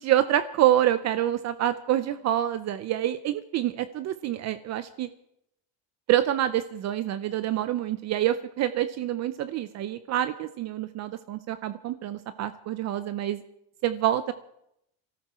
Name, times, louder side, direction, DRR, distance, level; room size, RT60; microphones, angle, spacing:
voice 1, 0.0-5.1 6.1-13.4 13.8-14.3, right 12 dB, 45° right, 12 dB, 0.6 m, -26 dB
23.5 x 13.5 x 4.3 m, 0.79 s
cardioid pair, 140°, 39 cm